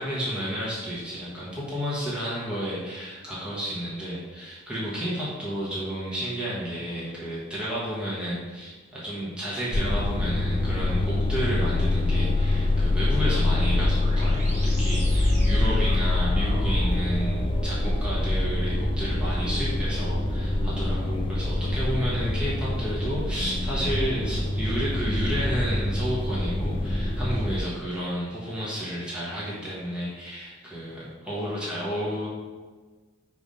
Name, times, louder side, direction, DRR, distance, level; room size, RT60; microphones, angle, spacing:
voice 1, 0.0-32.3, equal, 5° right, -8 dB, 1.3 m, -31 dB
sound 1, 9.7-27.6, left 2 dB, 25° left, 0.4 m, -25 dB
sound 2, 12.8-22.8, right 1 dB, 35° right, 1.2 m, -37 dB
4.9 x 3.5 x 5.5 m, 1.4 s
head